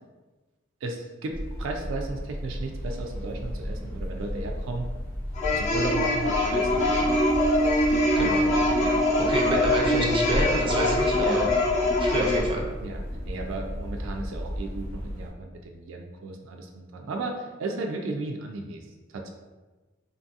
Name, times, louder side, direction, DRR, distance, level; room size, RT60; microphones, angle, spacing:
voice 1, 0.8-4.9 5.5-7.2 8.8-9.0 11.2-11.9 12.8-18.9 19.1-19.3, right 2 dB, 80° right, 3 dB, 0.3 m, -35 dB
sound 1, 1.3-15.3, equal, 5° left, 0.8 m, -34 dB
sound 2, 5.3-12.4, left 2 dB, 35° left, 0.6 m, -24 dB
sound 3, 6.8-11.0, right 4 dB, 85° left, 0.6 m, -28 dB
voice 2, 8.1-8.4 9.2-11.5 12.0-12.6, right 1 dB, 25° right, -1 dB, 0.5 m, -28 dB
2.8 x 2.6 x 2.3 m, 1.2 s
head